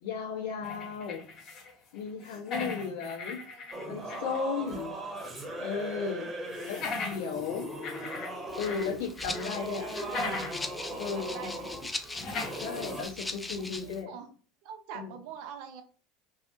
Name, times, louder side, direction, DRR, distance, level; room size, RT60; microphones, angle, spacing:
voice 1, 0.0-1.2 1.9-3.4 3.9-5.0 5.6-6.3 7.0-7.6 8.6-9.9 11.0-11.5 12.6-14.1 14.9-15.1, left 6 dB, 70° left, -3 dB, 1.1 m, -35 dB
sound 1, 0.6-1.7 2.0-4.4 4.8-4.9 6.5-8.9 9.2-10.7 11.0-11.1 12.1-13.1, left 3 dB, 45° left, 0.7 m, -39 dB
voice 2, 3.4-4.5 5.9-6.3 9.8-10.5 10.9-11.7 12.0-12.2 13.8-14.3 14.6-15.8, right 7 dB, 60° right, 6 dB, 0.6 m, -45 dB
Singing / Musical instrument, 3.7-13.1, right 1 dB, 20° right, 0.8 m, -39 dB
Rattle (instrument), 8.5-14.0, left 2 dB, 15° left, 0.3 m, -40 dB
2.7 x 2.4 x 2.8 m, 0.41 s
figure-of-eight pair, 75°, 0 cm